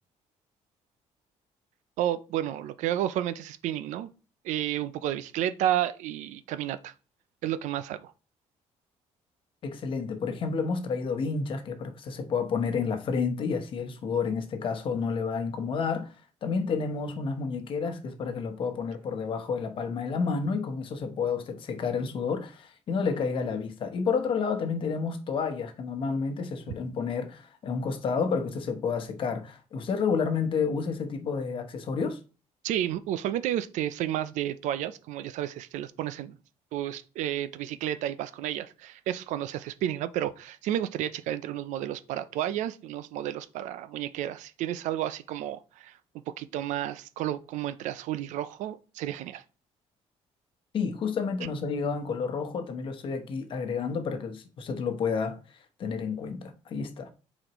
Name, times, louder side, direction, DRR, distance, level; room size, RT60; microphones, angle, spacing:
voice 1, 2.0-4.1 4.4-6.9 7.4-8.1 32.6-36.4 36.7-46.0 46.3-49.4, right 12 dB, 90° right, 0.5 m, -31 dB
voice 2, 9.6-16.1 16.4-32.2 50.7-55.4 55.8-57.1, left 5 dB, 45° left, 1.0 m, -30 dB
7.7 x 4.2 x 3.0 m
cardioid pair, 160°, 12 cm